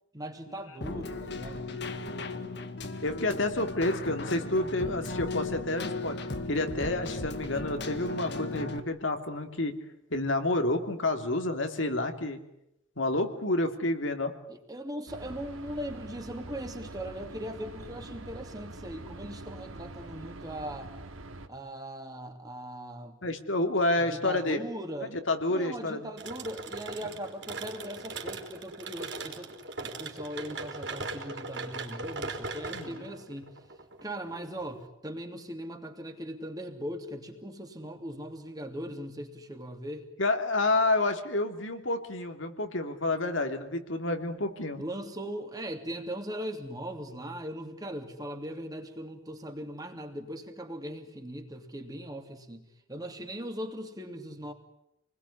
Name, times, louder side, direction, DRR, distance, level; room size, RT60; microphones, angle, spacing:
voice 1, 0.1-2.4 14.5-20.9 21.5-23.2 24.0-25.2 25.5-33.6 34.0-40.1 44.8-54.5, equal, 20° right, 4 dB, 2.9 m, -39 dB
Keyboard (musical), 0.8-8.8, left 2 dB, 55° left, 1.9 m, -36 dB
voice 2, 3.0-6.2 6.5-9.7 10.1-12.4 13.0-14.3 23.2-24.6 25.3-26.0 32.7-33.0 40.2-44.8, left 2 dB, 70° left, 6 dB, 2.9 m, -29 dB
sound 1, 15.1-21.5, right 2 dB, 85° right, 2.6 m, -44 dB
sound 2, 26.2-34.9, right 3 dB, 60° right, 4.1 m, -39 dB
28.5 x 21.0 x 10.0 m, 0.82 s
head